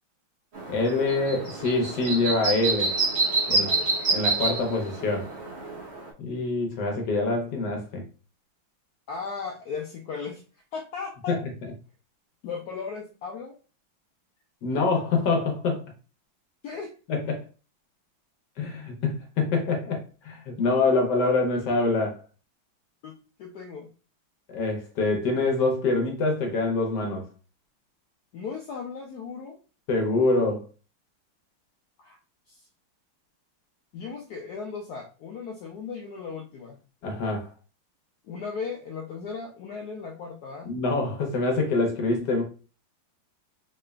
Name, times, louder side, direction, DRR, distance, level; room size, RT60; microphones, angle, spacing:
sound 1, 0.5-6.1, right 3 dB, 55° right, 0.7 m, -27 dB
voice 1, 0.7-3.0 3.5-3.7 4.1-5.3 6.2-8.0 11.3-11.4 14.6-15.8 17.1-17.4 18.6-22.2 24.5-27.2 29.9-30.6 37.0-37.5 40.6-42.4, left 3 dB, 65° left, 1.2 m, -25 dB
voice 2, 3.5-3.9 9.1-10.4 10.7-11.4 12.4-13.5 16.6-16.9 23.0-23.9 28.3-29.6 32.0-32.2 32.5-32.7 33.9-36.8 38.2-40.7, left 5 dB, 85° left, 0.8 m, -36 dB
3.7 x 3.2 x 2.2 m
omnidirectional pair, 2.2 m